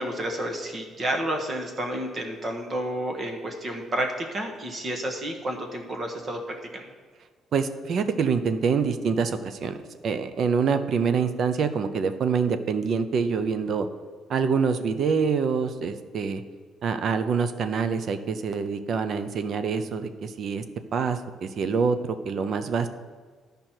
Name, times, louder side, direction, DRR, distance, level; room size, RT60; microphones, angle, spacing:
voice 1, 0.0-6.4 6.7-6.9, right 1 dB, 30° right, 3 dB, 1.2 m, -30 dB
voice 2, 7.5-9.8 10.0-13.9 14.3-16.4 16.8-20.6 20.9-22.9, right 5 dB, 50° right, 10 dB, 0.6 m, -25 dB
12.5 x 5.2 x 4.5 m, 1.5 s
cardioid pair, 140°, 0 cm